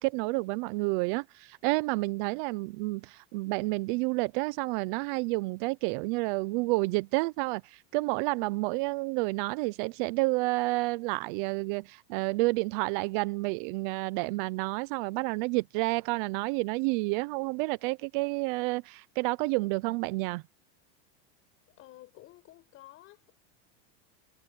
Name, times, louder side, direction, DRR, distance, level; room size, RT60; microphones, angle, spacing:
voice 1, 0.0-20.4, right 24 dB, 45° right, 0.6 m, -30 dB
voice 2, 21.7-23.4, left 15 dB, 35° left, 5.7 m, -53 dB
supercardioid pair, 160°, 36 cm